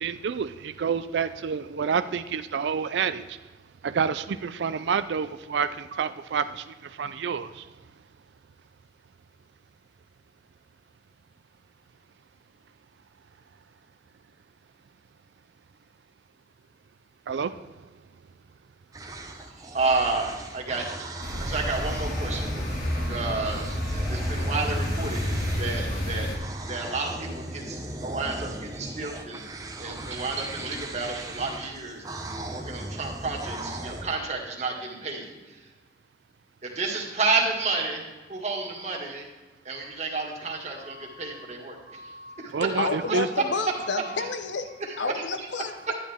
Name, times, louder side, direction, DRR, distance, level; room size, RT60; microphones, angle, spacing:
voice 1, 0.0-3.2 3.8-6.6 7.0-7.6 17.3-17.5 42.5-43.3, right 6 dB, 75° right, 13 dB, 0.4 m, -28 dB
sound 1, 18.9-25.9 26.3-34.0, right 1 dB, 20° right, 0.9 m, -38 dB
voice 2, 19.7-25.2 25.6-26.3 26.7-29.5 29.8-32.0 32.5-35.6 36.6-38.0 38.3-39.3 39.7-43.2 43.8-44.3 44.8-45.5, right 3 dB, 40° right, -1 dB, 1.9 m, -31 dB
sound 2, 21.2-26.4, equal, 55° left, 2.3 m, -29 dB
voice 3, 42.8-44.7 45.0-45.9, left 4 dB, 85° left, 8 dB, 0.9 m, -30 dB
11.5 x 10.0 x 3.6 m, 1.2 s
head